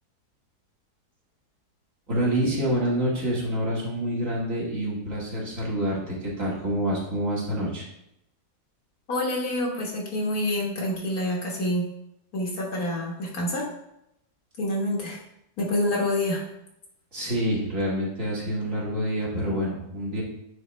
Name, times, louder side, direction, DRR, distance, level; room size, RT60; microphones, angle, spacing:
voice 1, 2.1-7.9 17.1-20.2, equal, 50° right, -5 dB, 2.3 m, -27 dB
voice 2, 9.1-11.9 12.3-13.7 14.6-15.2 15.6-16.4, left 1 dB, 65° left, -2 dB, 2.0 m, -27 dB
9.3 x 4.2 x 3.3 m, 0.81 s
omnidirectional pair, 1.7 m